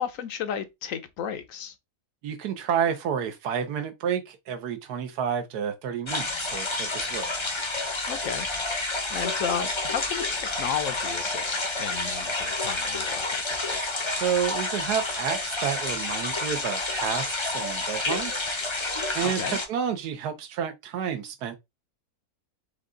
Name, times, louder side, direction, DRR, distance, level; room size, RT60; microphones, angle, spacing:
voice 1, 0.0-1.7 8.1-8.5 9.1-13.8 19.2-19.6, left 8 dB, 65° left, 0.9 m, -33 dB
voice 2, 2.2-7.3 14.1-18.5 19.1-21.6, right 8 dB, 80° right, 1.4 m, -30 dB
sound 1, 6.1-19.7, left 2 dB, 30° left, 0.5 m, -29 dB
5.2 x 2.3 x 3.7 m
omnidirectional pair, 1.7 m